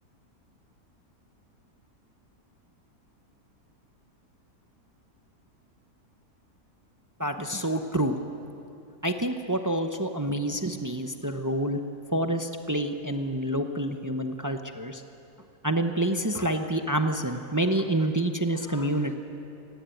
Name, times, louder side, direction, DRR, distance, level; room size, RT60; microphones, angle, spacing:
voice 1, 7.2-8.2 9.0-11.8 12.1-15.0 15.6-19.2, right 1 dB, 25° right, 6 dB, 0.4 m, -27 dB
18.5 x 16.0 x 9.1 m, 2.8 s
omnidirectional pair, 1.7 m